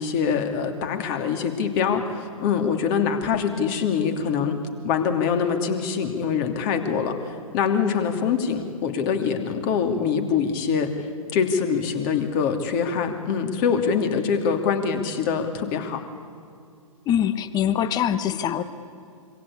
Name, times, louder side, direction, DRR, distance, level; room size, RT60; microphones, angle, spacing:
voice 1, 0.0-4.6 4.8-10.9 11.3-16.0, left 6 dB, 35° left, 6 dB, 2.8 m, -24 dB
voice 2, 17.1-18.6, left 10 dB, 20° left, 13 dB, 1.3 m, -23 dB
26.5 x 24.0 x 8.6 m, 2.3 s
figure-of-eight pair, 125°, 18 cm